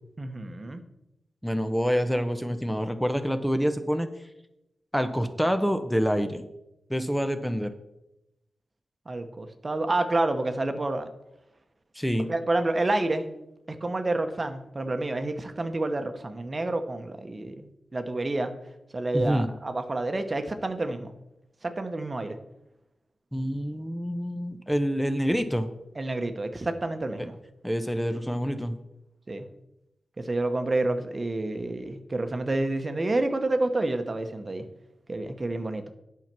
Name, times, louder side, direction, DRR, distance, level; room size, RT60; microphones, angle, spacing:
voice 1, 0.2-0.8 9.1-11.1 12.2-13.3 13.7-18.5 18.9-21.1 21.6-22.4 26.0-27.3 29.3-29.4 30.2-34.6 35.1-35.8, right 2 dB, 40° right, 7 dB, 1.0 m, -29 dB
voice 2, 1.4-4.1 4.9-6.4 6.9-7.7 11.9-12.3 19.1-19.5 23.3-25.7 27.2-27.3 27.6-28.8, equal, ahead, 8 dB, 0.8 m, -27 dB
9.0 x 5.8 x 6.0 m, 0.89 s
cardioid pair, 55°, 0 cm